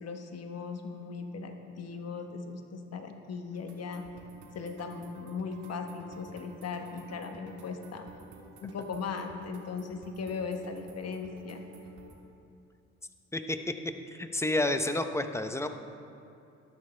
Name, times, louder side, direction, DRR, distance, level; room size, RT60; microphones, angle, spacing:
voice 1, 0.0-4.0 4.5-8.1 8.6-11.6, left 5 dB, 55° left, 5 dB, 1.1 m, -38 dB
sound 1, 3.5-12.2, right 3 dB, 75° right, 1.6 m, -52 dB
voice 2, 14.1-15.7, left 2 dB, 10° left, 7 dB, 0.6 m, -30 dB
12.5 x 11.5 x 3.3 m, 2.7 s
cardioid pair, 90°, 30 cm